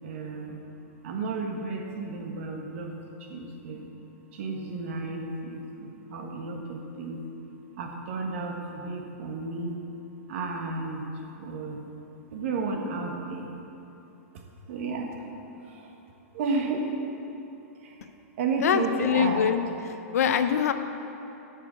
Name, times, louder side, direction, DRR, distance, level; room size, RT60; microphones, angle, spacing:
voice 1, 0.0-0.6 1.0-2.9 3.2-3.9 4.3-7.2 7.8-9.8 10.3-11.0 11.4-11.8 12.3-13.5 14.7-15.2 15.6-16.0 16.3-16.9 17.8-18.1 18.4-19.5, right 3 dB, 55° right, 2 dB, 1.4 m, -32 dB
voice 2, 18.6-19.6 20.1-20.7, left 8 dB, 75° left, 9 dB, 0.7 m, -23 dB
9.1 x 5.9 x 7.5 m, 2.9 s
hypercardioid pair, 155°, 8 cm